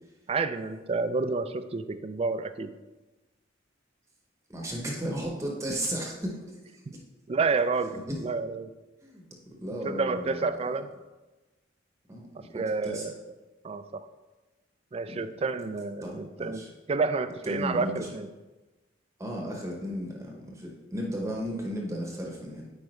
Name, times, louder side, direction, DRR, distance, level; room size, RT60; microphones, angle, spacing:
voice 1, 0.3-2.7 6.9-7.0 7.3-8.7 9.8-10.9 12.5-13.1 13.6-14.1 14.9-18.3, right 4 dB, 30° right, 11 dB, 0.3 m, -29 dB
voice 2, 4.5-7.0 8.1-8.2 9.0-10.5 12.1-13.1 15.1-15.2 16.0-16.7 17.4-18.1 19.2-22.7, equal, 15° right, -1 dB, 0.9 m, -35 dB
8.9 x 4.8 x 3.2 m, 1.2 s
head